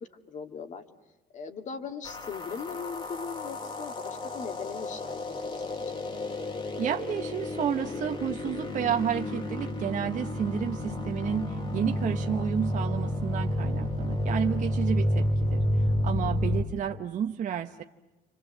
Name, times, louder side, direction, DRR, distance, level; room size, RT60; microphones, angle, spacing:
voice 1, 0.3-0.8 1.3-6.0, left 5 dB, 45° left, 6 dB, 2.3 m, -39 dB
sound 1, 2.0-16.6, left 1 dB, 30° left, 2.6 m, -30 dB
voice 2, 6.8-17.8, right 8 dB, 50° right, 4 dB, 1.0 m, -31 dB
29.5 x 25.5 x 7.9 m, 1.1 s
cardioid pair, 110°, 17 cm